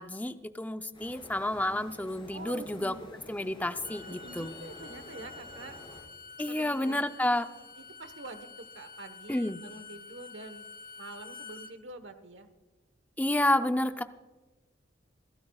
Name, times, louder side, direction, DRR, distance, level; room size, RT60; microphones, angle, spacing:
voice 1, 0.0-2.9 3.3-4.5 6.4-7.5 9.3-9.6 13.2-14.0, left 1 dB, 10° left, 9 dB, 0.5 m, -30 dB
sound 1, 0.9-6.0, left 1 dB, 25° left, 5.5 m, -50 dB
voice 2, 2.3-3.0 4.1-5.7 6.4-7.1 7.5-10.6 11.0-12.5, right 2 dB, 70° right, 10 dB, 1.2 m, -46 dB
Bowed string instrument, 3.8-11.7, left 4 dB, 45° left, 1.1 m, -48 dB
27.5 x 12.5 x 2.4 m, 1.2 s
head